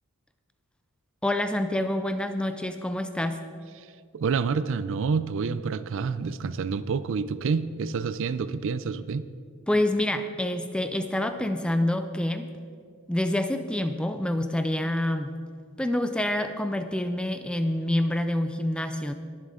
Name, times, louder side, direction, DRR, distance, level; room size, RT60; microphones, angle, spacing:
voice 1, 1.2-3.4 9.7-12.5 13.1-15.3 15.8-19.1, left 1 dB, 5° left, 9 dB, 0.4 m, -27 dB
voice 2, 3.8-9.3, right 5 dB, 60° right, 14 dB, 0.4 m, -28 dB
21.0 x 7.5 x 3.7 m, 2.2 s
head